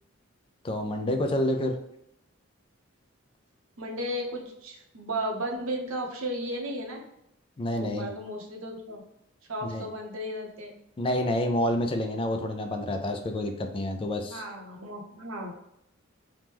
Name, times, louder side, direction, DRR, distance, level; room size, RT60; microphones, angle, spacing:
voice 1, 0.6-1.8 7.6-8.1 9.6-9.9 11.0-14.4, left 1 dB, 25° left, 5 dB, 0.4 m, -28 dB
voice 2, 3.8-7.0 7.8-9.0 9.5-10.7 14.3-15.5, equal, 85° right, 1 dB, 0.8 m, -34 dB
2.9 x 2.1 x 3.4 m, 0.80 s
head